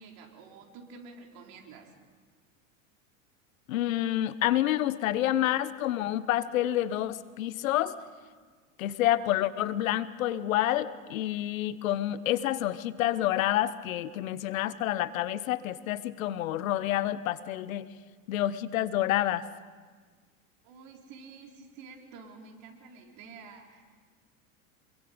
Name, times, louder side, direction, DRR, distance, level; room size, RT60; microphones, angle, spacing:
voice 1, 0.0-1.9 20.6-23.9, right 4 dB, 60° right, 1 dB, 4.2 m, -49 dB
voice 2, 3.7-7.9 8.8-17.9 18.3-19.4, left 13 dB, 75° left, 15 dB, 1.1 m, -28 dB
27.0 x 23.0 x 5.3 m, 1.5 s
hypercardioid pair, 95°, 41 cm